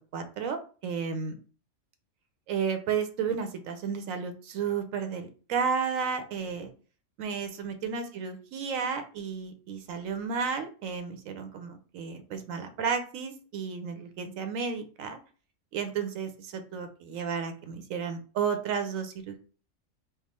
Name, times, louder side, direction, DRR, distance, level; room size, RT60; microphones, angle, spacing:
voice 1, 0.1-1.4 2.5-6.7 7.2-15.2 15.7-19.4, right 6 dB, 90° right, 8 dB, 1.1 m, -32 dB
3.6 x 2.0 x 4.2 m, 0.38 s
omnidirectional pair, 1.3 m